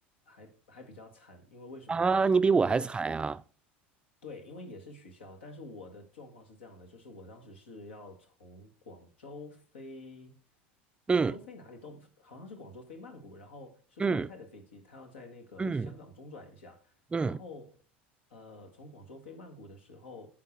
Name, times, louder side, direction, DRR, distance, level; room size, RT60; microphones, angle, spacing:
voice 1, 0.2-2.2 2.7-2.9 4.2-10.4 11.1-17.8 18.3-20.3, left 2 dB, 80° left, 1.6 m, -48 dB
voice 2, 1.9-3.4 11.1-11.3 14.0-14.3 15.6-15.9 17.1-17.4, right 4 dB, 15° right, 0.4 m, -26 dB
9.9 x 3.8 x 6.4 m
hypercardioid pair, 75°, 6 cm